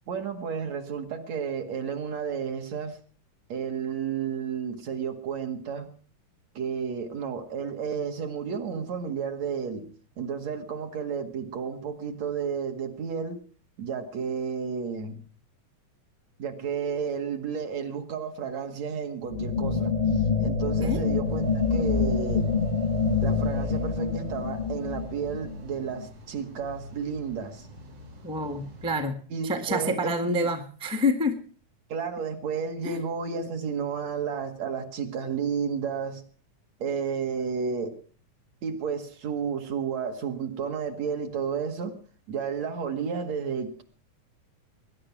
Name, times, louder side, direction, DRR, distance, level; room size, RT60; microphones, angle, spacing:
voice 1, 0.1-3.0 3.5-5.9 6.6-9.9 10.2-13.4 13.8-15.2 16.4-22.5 23.2-27.7 29.3-30.5 31.9-36.2 36.8-38.0 38.6-42.0 42.3-43.8, right 6 dB, 65° right, 5 dB, 3.0 m, -32 dB
sound 1, 19.3-26.1, left 5 dB, 25° left, 0.9 m, -26 dB
sound 2, 21.2-29.0, left 1 dB, 90° right, 4.8 m, -47 dB
voice 2, 28.2-29.2 29.4-31.4 32.8-33.0, left 1 dB, 5° right, 8 dB, 0.8 m, -27 dB
20.5 x 11.0 x 6.1 m, 0.42 s
omnidirectional pair, 3.4 m